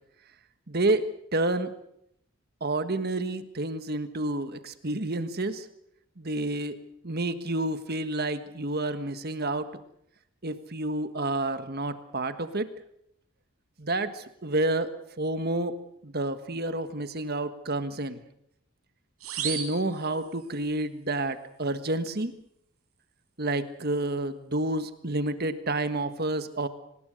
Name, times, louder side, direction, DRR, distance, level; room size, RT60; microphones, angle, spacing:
voice 1, 0.7-1.0 1.3-1.7 2.6-5.6 6.2-6.8 7.0-9.7 10.4-12.7 13.8-14.9 15.2-15.7 16.0-18.2 19.4-22.3 23.4-26.7, right 2 dB, 45° right, 10 dB, 1.5 m, -29 dB
sound 1, 19.2-20.7, right 9 dB, 75° right, 4.8 m, -36 dB
24.5 x 20.0 x 6.4 m, 0.75 s
head